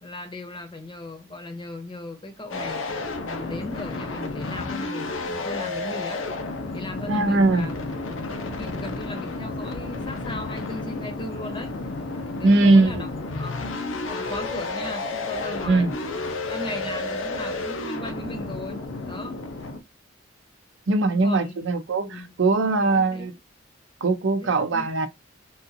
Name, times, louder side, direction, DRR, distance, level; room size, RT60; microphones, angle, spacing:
voice 1, 0.0-2.9 3.2-6.2 6.7-7.7 8.3-11.7 12.3-13.1 13.3-13.6 14.1-15.9 16.5-19.4 21.0-21.6 22.0-22.3 22.6-23.4 24.3-24.9, left 2 dB, 25° left, 0.8 m, -37 dB
sound 1, 2.5-19.8, left 3 dB, 80° left, 0.7 m, -31 dB
voice 2, 7.1-7.7 12.4-13.0 15.7-15.9 20.9-23.3 24.0-25.1, right 2 dB, 65° right, 0.6 m, -20 dB
3.6 x 2.5 x 2.6 m
head